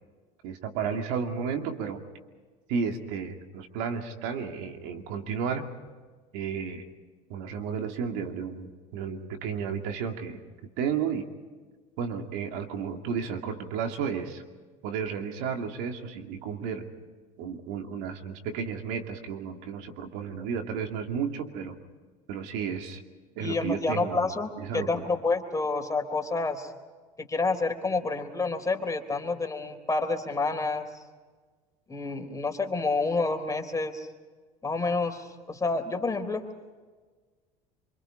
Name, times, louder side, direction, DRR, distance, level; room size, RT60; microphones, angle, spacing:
voice 1, 0.4-2.0 2.7-5.7 6.3-6.8 7.3-10.4 10.8-11.3 12.0-14.4 14.8-16.9 17.4-21.8 22.3-23.0 23.4-24.3 24.6-25.1, right 6 dB, 75° right, 5 dB, 2.5 m, -32 dB
voice 2, 23.4-26.7 27.2-30.9 31.9-34.1 34.6-36.4, left 3 dB, 20° left, 4 dB, 3.5 m, -29 dB
26.5 x 25.0 x 5.1 m, 1.4 s
supercardioid pair, 90°, 18 cm